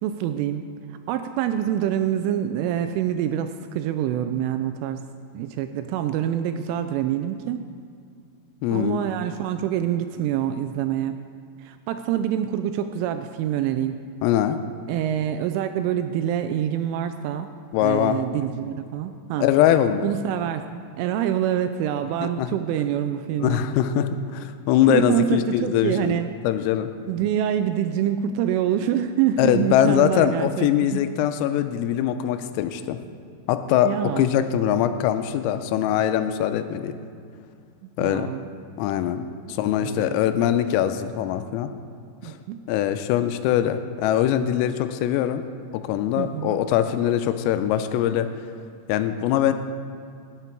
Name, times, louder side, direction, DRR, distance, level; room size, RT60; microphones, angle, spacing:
voice 1, 0.0-0.6 1.1-5.0 5.3-7.6 8.7-11.2 11.6-14.0 14.9-17.5 17.8-19.5 20.0-23.6 24.9-26.3 27.1-31.0 33.8-34.3 38.0-38.4 39.6-40.2 42.2-42.6 46.2-46.6, right 10 dB, 85° right, 8 dB, 2.8 m, -26 dB
voice 2, 8.6-9.0 14.2-14.6 17.7-18.2 19.4-20.1 22.2-22.5 23.4-26.1 26.4-26.9 29.4-33.0 33.5-37.0 38.0-38.3 38.8-41.7 42.2-42.4 42.7-45.4 45.7-48.3 48.9-49.5, left 10 dB, 90° left, 10 dB, 3.3 m, -22 dB
18.0 x 8.1 x 4.5 m, 2.3 s
omnidirectional pair, 5.9 m